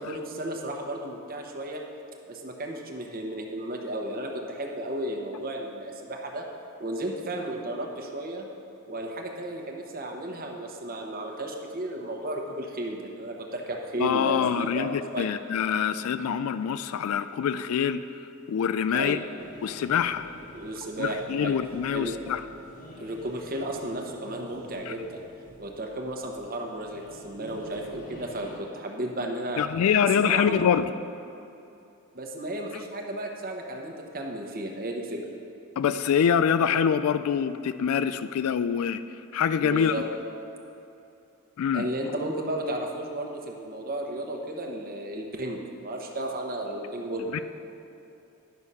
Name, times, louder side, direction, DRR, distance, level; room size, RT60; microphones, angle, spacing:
voice 1, 0.0-1.8 2.3-6.5 6.8-8.5 8.9-15.3 18.9-19.2 20.5-21.5 21.9-22.2 23.0-25.2 25.6-29.7 30.2-30.7 32.1-35.2 39.6-40.0 41.7-47.3, right 1 dB, 45° right, 1 dB, 1.0 m, -34 dB
voice 2, 14.0-18.0 18.5-19.2 19.6-20.3 21.0-22.4 24.9-25.0 29.6-30.9 35.8-39.9 41.6-41.9 47.3-47.4, left 7 dB, 75° left, 13 dB, 0.3 m, -25 dB
sound 1, 19.4-28.6, equal, 40° left, 1.3 m, -47 dB
10.5 x 6.3 x 5.5 m, 2.8 s
head